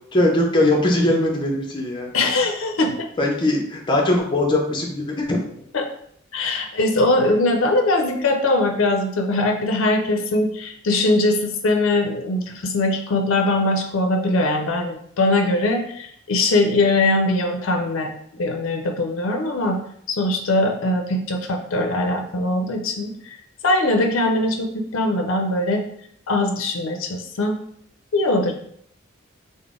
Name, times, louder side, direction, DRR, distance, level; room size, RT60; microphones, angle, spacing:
voice 1, 0.1-2.1 3.2-5.4, left 1 dB, 25° left, 0 dB, 0.6 m, -20 dB
voice 2, 2.1-3.1 5.7-5.9 6.3-19.8 20.1-23.1 23.6-25.8 26.3-27.6 28.1-28.5, left 2 dB, 85° left, 4 dB, 0.5 m, -21 dB
3.8 x 2.1 x 3.5 m, 0.68 s
head